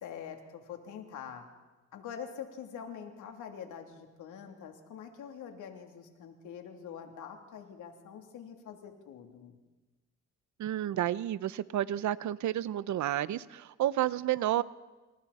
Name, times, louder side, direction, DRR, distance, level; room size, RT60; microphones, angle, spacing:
voice 1, 0.0-1.5 1.9-9.6, left 7 dB, 80° left, 3 dB, 3.2 m, -45 dB
voice 2, 10.6-14.6, right 12 dB, 70° right, 17 dB, 0.9 m, -31 dB
28.0 x 27.0 x 4.3 m, 1.2 s
cardioid pair, 90°, 30 cm